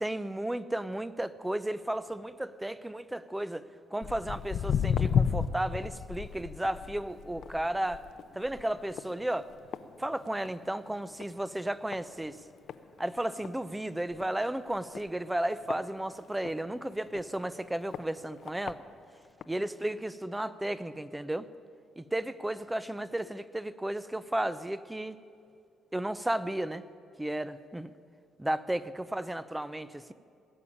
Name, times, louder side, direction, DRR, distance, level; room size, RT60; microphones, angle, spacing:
voice 1, 0.0-8.0 8.3-9.5 10.0-12.4 13.0-18.8 19.5-21.5 22.0-25.2 25.9-26.8 27.2-27.9 28.4-30.1, right 1 dB, 10° right, 15 dB, 0.6 m, -33 dB
Walk footsteps, 4.0-10.7 11.0-11.4 11.9-12.0 12.7-12.8 13.2-13.3 13.4-13.5 14.1-14.3 14.9-16.5 17.1-17.2 17.9-18.0 18.5-18.7 19.4-19.5, left 7 dB, 65° left, 0.6 m, -32 dB
19.0 x 7.0 x 9.9 m, 2.4 s
cardioid pair, 90°, 0 cm